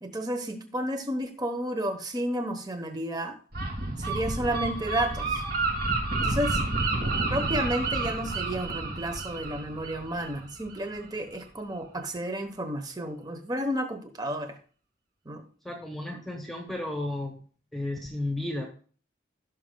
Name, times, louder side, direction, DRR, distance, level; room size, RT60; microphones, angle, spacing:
voice 1, 0.0-3.4 4.0-5.4 6.2-6.6 7.3-14.6 15.3-15.5, right 1 dB, 20° right, 7 dB, 0.9 m, -31 dB
Gull seagull, 3.5-11.0, right 2 dB, 50° right, 2.2 m, -30 dB
voice 2, 15.6-17.4 17.7-18.7, left 1 dB, ahead, 1 dB, 1.2 m, -33 dB
16.5 x 6.3 x 2.3 m, 0.42 s
head